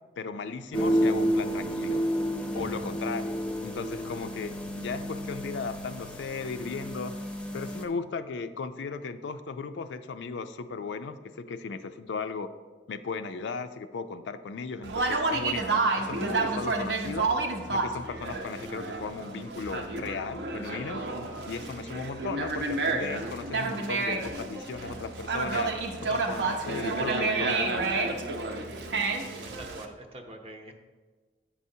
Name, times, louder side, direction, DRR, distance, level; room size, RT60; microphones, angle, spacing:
voice 1, 0.2-2.1 2.5-7.1 7.5-12.5 12.9-17.3 17.7-21.0 21.5-25.7 26.0-28.0, left 4 dB, 85° left, 10 dB, 0.4 m, -36 dB
sound 1, 0.7-7.8, equal, 5° left, 0.6 m, -30 dB
Conversation, 14.8-29.8, right 3 dB, 70° right, 0.7 m, -30 dB
voice 2, 29.3-30.7, right 1 dB, 35° right, 3 dB, 0.7 m, -45 dB
8.5 x 5.5 x 2.7 m, 1.4 s
head